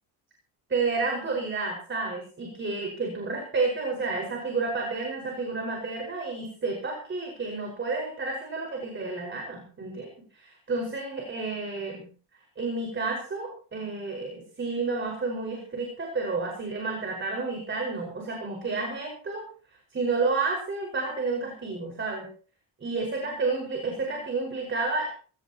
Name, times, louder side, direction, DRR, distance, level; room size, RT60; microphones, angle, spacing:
voice 1, 0.7-10.1 10.3-12.1 12.6-19.5 19.9-22.3 22.8-25.1, right 3 dB, 25° right, 0 dB, 5.5 m, -30 dB
25.0 x 17.5 x 3.0 m, 0.41 s
cardioid pair, 150°, 46 cm